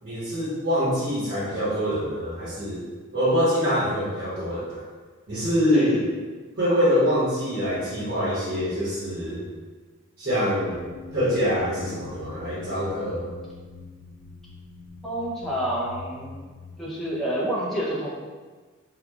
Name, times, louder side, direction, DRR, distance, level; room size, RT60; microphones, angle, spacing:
voice 1, 0.0-2.8 3.1-4.8 5.3-6.0 6.6-9.4 10.2-10.8 11.1-13.2, equal, 55° right, -13 dB, 1.1 m, -24 dB
sound 1, 10.6-16.8, left 4 dB, 80° left, 0.3 m, -43 dB
voice 2, 15.0-16.4 16.8-18.1, right 1 dB, ahead, -7 dB, 0.5 m, -28 dB
2.9 x 2.3 x 3.6 m, 1.4 s
head